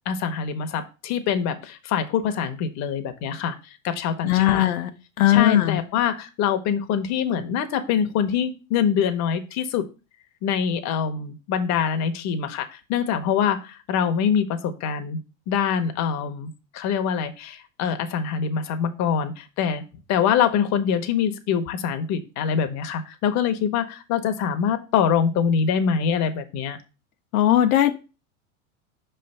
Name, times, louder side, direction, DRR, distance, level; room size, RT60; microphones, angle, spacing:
voice 1, 0.1-4.7 5.3-9.8 10.4-15.2 15.5-19.8 20.1-26.8, left 7 dB, 40° left, 8 dB, 0.9 m, -24 dB
voice 2, 4.2-4.9 5.2-5.8 27.3-27.9, left 13 dB, 80° left, 7 dB, 0.7 m, -18 dB
5.3 x 3.3 x 5.4 m, 0.32 s
hypercardioid pair, 110°, 42 cm